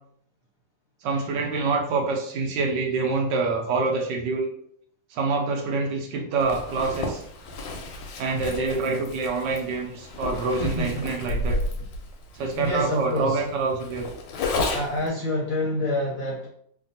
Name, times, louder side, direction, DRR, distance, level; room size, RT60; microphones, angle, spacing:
voice 1, 1.0-4.5 5.1-7.2 8.2-11.6 12.3-14.1 14.5-14.6, right 3 dB, 75° right, 2 dB, 1.2 m, -26 dB
Zipper (clothing), 6.4-15.1, left 2 dB, 80° left, 1.2 m, -32 dB
voice 2, 10.6-11.3 12.5-13.4 14.7-16.5, left 1 dB, 65° left, -4 dB, 0.8 m, -28 dB
3.4 x 2.1 x 2.6 m, 0.65 s
omnidirectional pair, 2.0 m